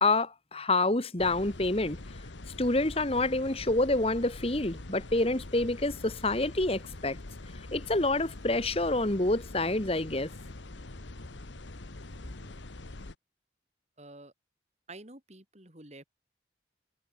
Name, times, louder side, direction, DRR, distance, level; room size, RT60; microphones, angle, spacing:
voice 1, 0.0-2.0 2.6-7.2 7.7-10.3, left 2 dB, 30° left, 1.6 m, -27 dB
sound 1, 1.2-13.1, left 2 dB, 80° left, 1.4 m, -44 dB
voice 2, 14.0-14.3 14.9-16.0, right 2 dB, 35° right, 3.5 m, -49 dB
head